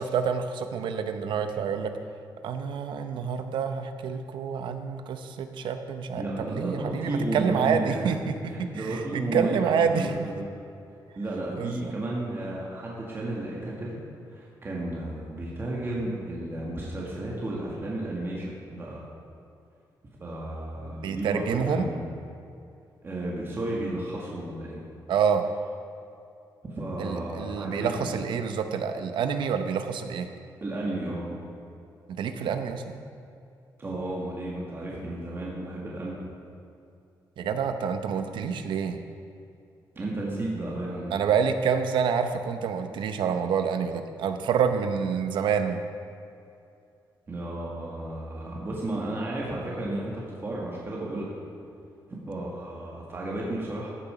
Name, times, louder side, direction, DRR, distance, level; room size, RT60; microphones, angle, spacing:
voice 1, 0.0-1.9 2.4-6.2 6.5-8.3 8.6-10.1 11.6-12.0 21.0-21.9 25.1-25.4 27.0-30.3 32.2-33.0 37.4-39.0 41.1-45.8, right 6 dB, 85° right, 8 dB, 0.8 m, -27 dB
voice 2, 6.2-8.0 8.5-10.5 11.2-14.0 14.3-19.1 20.2-22.1 23.0-24.8 26.7-28.1 30.6-31.4 33.8-36.2 40.0-41.1 47.3-51.3 52.3-53.9, right 1 dB, 30° right, -4 dB, 1.8 m, -33 dB
14.0 x 7.0 x 5.0 m, 2.6 s
cardioid pair, 130°, 8 cm